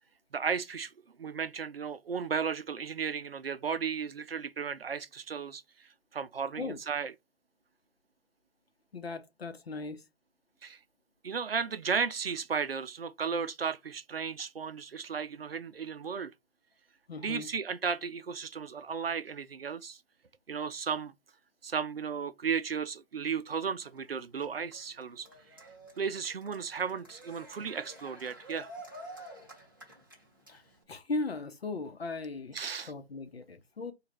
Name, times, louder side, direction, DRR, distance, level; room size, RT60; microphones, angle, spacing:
voice 1, 0.3-0.9 1.2-5.6 6.1-7.1 10.6-10.8 11.2-16.3 17.2-20.0 20.5-21.1 21.6-25.3 26.0-28.7 32.5-32.9, right 6 dB, 60° right, 0.5 m, -34 dB
voice 2, 8.9-10.0 17.1-17.5 30.5-30.6 30.9-32.6 32.9-33.9, left 3 dB, 65° left, 0.8 m, -37 dB
Cheering, 23.8-30.8, right 1 dB, 20° right, 0.7 m, -50 dB
3.8 x 2.4 x 3.2 m
figure-of-eight pair, 170°, 34 cm